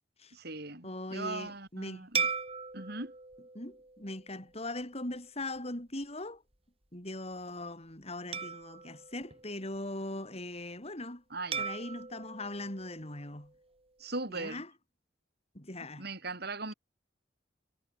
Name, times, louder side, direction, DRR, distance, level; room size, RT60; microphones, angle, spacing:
voice 1, 0.3-2.3 2.7-3.1 11.3-11.7 14.0-14.6 16.0-16.7, right 3 dB, 60° right, 7.0 m, -39 dB
voice 2, 0.8-2.1 3.5-6.4 6.9-11.2 11.6-13.5 14.3-14.7 15.5-16.1, left 2 dB, 35° left, 6.7 m, -40 dB
sound 1, 2.1-4.8 5.4-5.6 8.3-10.1 11.5-13.8, right 5 dB, 30° right, 4.5 m, -39 dB
head